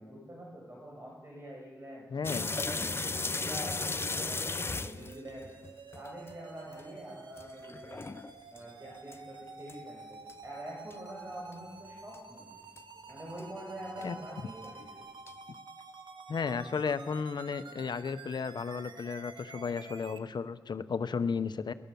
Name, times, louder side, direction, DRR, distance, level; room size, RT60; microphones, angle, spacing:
voice 1, 0.0-2.0 2.5-5.5 5.9-8.1 8.5-12.5 13.1-15.0, equal, 30° right, -3 dB, 6.9 m, -45 dB
voice 2, 2.1-2.5 14.0-14.2 16.3-21.7, left 5 dB, 70° left, 11 dB, 1.0 m, -34 dB
sound 1, 2.2-6.3 6.7-6.8 7.4-8.6 9.1-9.2 9.7-9.8 10.3-10.4 10.9-11.0 11.5-11.6 12.1-12.2 12.8-12.9 13.4-13.5 14.0-14.1 14.6-14.7 15.3-15.4, left 3 dB, 30° left, 0.8 m, -35 dB
sound 2, 3.6-20.2, right 4 dB, 90° right, 1.6 m, -50 dB
22.5 x 19.5 x 7.1 m, 1.3 s
wide cardioid pair, 80°, 8 cm